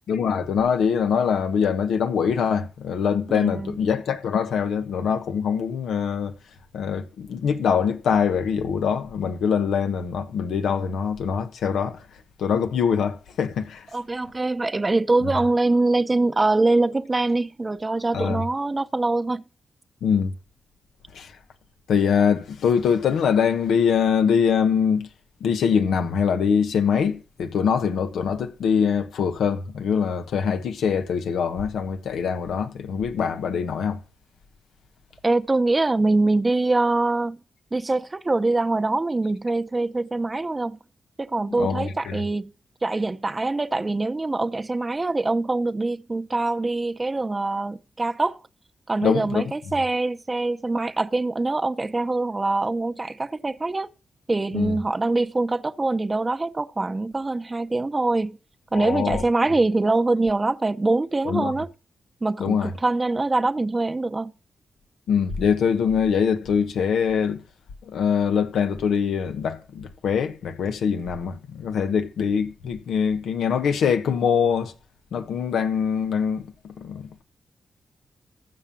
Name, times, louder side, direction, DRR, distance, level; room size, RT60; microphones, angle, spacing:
voice 1, 0.1-6.3 6.7-12.0 12.4-13.9 18.1-18.4 20.0-20.3 21.1-21.3 21.9-25.1 25.4-34.0 41.6-42.2 49.0-49.4 54.5-54.8 58.7-59.2 61.2-61.5 62.4-62.7 65.1-67.4 67.9-74.7 75.1-77.2, left 7 dB, 90° left, 1.2 m, -23 dB
voice 2, 3.3-3.8 13.9-19.4 35.2-37.4 37.7-40.8 41.2-42.5 42.8-48.4 48.9-53.9 54.3-58.4 58.7-61.7 62.2-64.3, right 2 dB, 30° right, 0.7 m, -24 dB
14.5 x 5.7 x 7.3 m
cardioid pair, 60°, 0 cm